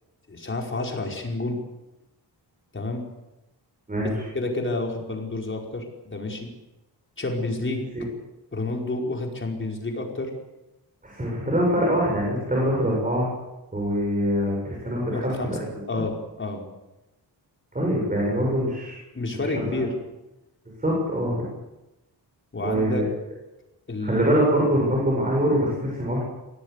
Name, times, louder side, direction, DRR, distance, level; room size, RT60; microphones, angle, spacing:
voice 1, 0.3-1.6 2.7-3.1 4.0-4.1 4.3-6.5 7.2-7.8 8.5-10.3 15.1-15.6 15.9-16.6 19.1-19.9 22.5-23.0 23.9-24.3, left 2 dB, 30° left, 1 dB, 5.1 m, -29 dB
voice 2, 3.9-4.3 7.9-8.1 11.0-13.3 13.7-15.6 15.9-16.0 17.7-19.0 19.3-19.8 20.8-21.4 22.6-23.0 24.0-26.2, equal, 20° right, -3 dB, 7.7 m, -24 dB
24.0 x 18.0 x 8.4 m, 0.97 s
wide cardioid pair, 145°, 41 cm